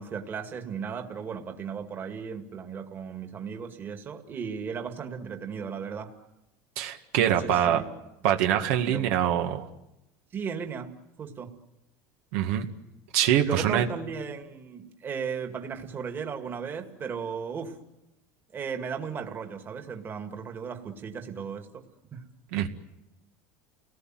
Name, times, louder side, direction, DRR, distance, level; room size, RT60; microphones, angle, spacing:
voice 1, 0.0-6.1 7.2-7.9 8.8-9.5 10.3-10.9 11.2-11.5 13.4-17.8 18.5-21.8 22.1-22.2, right 6 dB, 30° right, 5 dB, 2.2 m, -36 dB
voice 2, 6.8-7.8 8.2-9.7 12.3-12.7 13.1-13.9 22.5-22.7, right 10 dB, 75° right, 5 dB, 1.9 m, -24 dB
30.0 x 19.0 x 7.7 m, 0.92 s
supercardioid pair, 140°, 8 cm